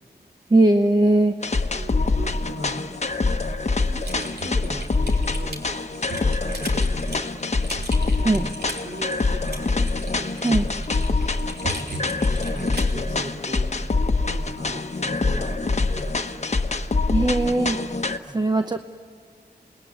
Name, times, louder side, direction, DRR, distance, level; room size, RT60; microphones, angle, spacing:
voice 1, 0.5-1.3 8.2-8.5 10.4-10.6 17.1-17.8 18.3-18.8, right 2 dB, 25° right, 7 dB, 0.8 m, -19 dB
sound 1, 1.4-18.2, left 3 dB, 40° left, 1.1 m, -25 dB
voice 2, 1.7-2.9 3.8-5.7 6.0-7.0 8.1-8.5 8.8-9.7 10.2-11.5 11.8-13.7 14.2-16.2 18.3-18.4, right 1 dB, 40° right, 6 dB, 3.1 m, -38 dB
Typing, 4.0-13.0, right 2 dB, 70° right, 3.6 m, -37 dB
28.5 x 20.5 x 9.6 m, 2.3 s
wide cardioid pair, 90°, 17 cm